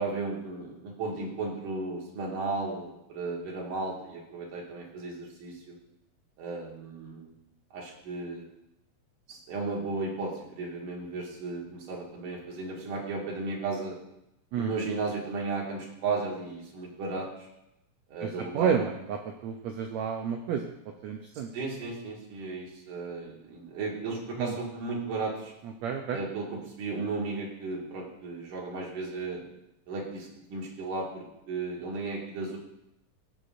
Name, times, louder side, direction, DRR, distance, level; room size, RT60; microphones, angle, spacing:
voice 1, 0.0-5.8 6.4-7.3 7.7-8.5 9.3-14.0 14.6-17.5 18.1-18.8 21.5-25.5 26.1-29.4 29.9-32.6, right 3 dB, 70° right, -3 dB, 3.6 m, -35 dB
voice 2, 18.2-20.7 21.0-21.5 24.4-24.5 25.8-26.2, right 7 dB, 85° right, 3 dB, 1.5 m, -30 dB
16.0 x 7.6 x 2.6 m, 0.84 s
omnidirectional pair, 3.9 m